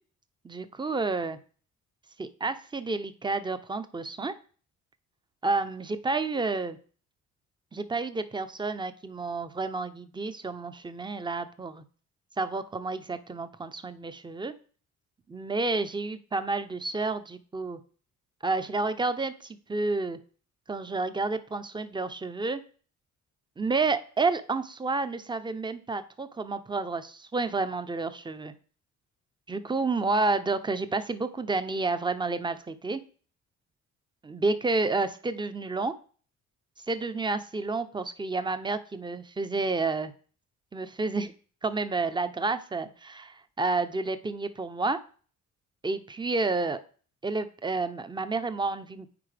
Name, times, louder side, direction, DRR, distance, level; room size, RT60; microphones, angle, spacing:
voice 1, 0.4-1.4 2.2-4.3 5.4-6.8 7.7-11.8 12.4-14.5 15.3-17.8 18.4-20.2 20.7-22.6 23.6-28.5 29.5-33.0 34.2-35.9 36.9-40.1 40.7-41.3 41.6-45.0 45.8-46.8 47.2-49.1, right 3 dB, 15° right, 11 dB, 0.7 m, -30 dB
9.6 x 4.3 x 3.4 m, 0.41 s
cardioid pair, 90°, 30 cm